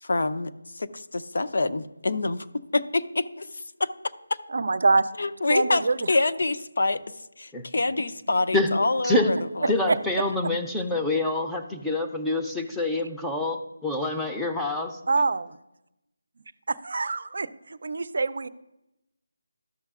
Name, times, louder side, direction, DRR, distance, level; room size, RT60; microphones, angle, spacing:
voice 1, 0.0-2.5 2.7-3.9 4.3-4.4 5.2-5.8 6.1-9.7, left 2 dB, 65° left, 11 dB, 0.6 m, -26 dB
voice 2, 4.5-5.1 5.5-6.1 9.9-10.0 15.1-15.6 16.7-18.5, right 3 dB, 60° right, 15 dB, 0.5 m, -25 dB
voice 3, 9.7-15.0, left 2 dB, ahead, 1 dB, 0.6 m, -26 dB
13.0 x 6.5 x 2.4 m, 0.90 s
figure-of-eight pair, 170°, 0 cm